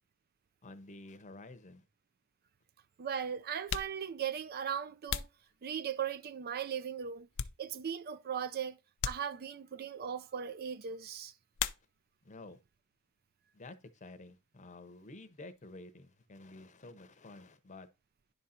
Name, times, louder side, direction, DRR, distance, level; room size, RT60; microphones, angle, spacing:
voice 1, 0.6-1.8 12.2-12.6 13.5-17.9, left 2 dB, 35° left, 0.8 m, -51 dB
sound 1, 1.8-1.9 2.8-2.9 3.5-6.2 6.7-8.1 8.4-8.5 9.0-9.8 11.5-12.3 12.6-13.3 13.5-15.7, left 9 dB, 60° left, 0.5 m, -42 dB
voice 2, 3.0-5.3 5.6-7.3 7.6-8.8 9.0-11.3, right 8 dB, 45° right, 0.4 m, -38 dB
10.5 x 3.8 x 4.2 m
head